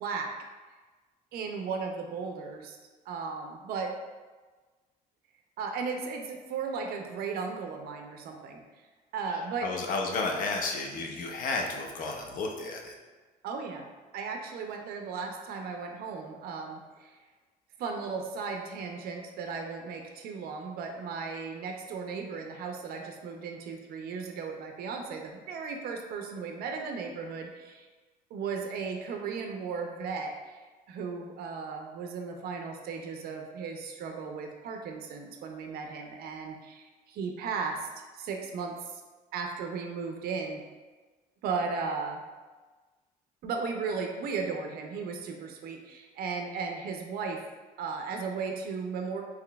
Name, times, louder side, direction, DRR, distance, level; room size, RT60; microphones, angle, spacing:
voice 1, 0.0-0.5 1.3-2.8 3.1-3.9 5.6-8.6 9.1-9.7 13.4-13.9 14.1-17.2 17.8-27.9 28.3-30.6 30.9-39.0 39.3-40.6 41.4-42.2 43.4-47.4 47.8-49.2, right 5 dB, 65° right, 3 dB, 0.4 m, -36 dB
voice 2, 9.6-12.9, left 3 dB, 55° left, 2 dB, 0.6 m, -32 dB
3.8 x 2.9 x 2.3 m, 1.3 s
cardioid pair, 110°, 17 cm